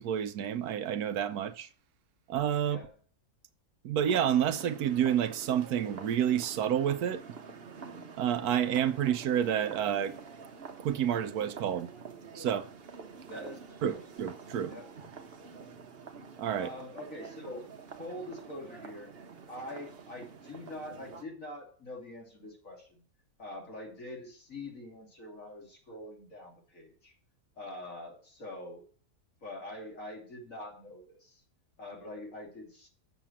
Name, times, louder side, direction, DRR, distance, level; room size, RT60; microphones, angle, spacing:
voice 1, 0.0-1.7 2.3-2.8 3.8-7.2 8.2-10.2 10.8-11.9 12.3-12.7 13.8-14.7 16.4-16.7, right 9 dB, 75° right, 1.2 m, -29 dB
sound 1, 4.1-21.2, right 5 dB, 45° right, 1.1 m, -47 dB
voice 2, 13.2-14.0 14.7-14.9 15.4-15.6 16.6-17.7 18.0-19.1 19.5-23.0 23.4-27.1 27.6-28.8 29.4-31.4 31.8-32.9, left 1 dB, 55° left, 3.0 m, -44 dB
7.1 x 6.7 x 7.3 m
omnidirectional pair, 1.7 m